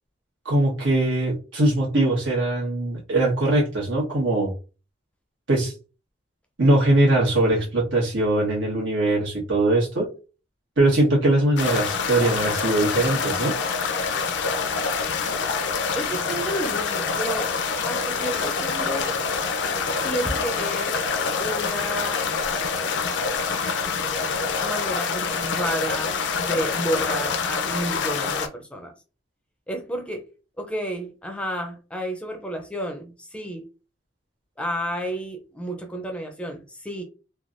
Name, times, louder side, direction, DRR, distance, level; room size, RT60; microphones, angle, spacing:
voice 1, 0.4-4.5 5.5-5.7 6.6-10.1 10.8-13.6, right 1 dB, 85° right, 1.3 m, -21 dB
sound 1, 11.6-28.5, left 5 dB, 70° left, 0.4 m, -26 dB
voice 2, 15.9-17.5 17.8-19.1 20.0-21.0 21.4-22.3 24.6-28.9 29.7-30.2 30.6-33.6 34.6-37.0, equal, 5° left, 0.4 m, -31 dB
3.3 x 2.2 x 2.5 m
head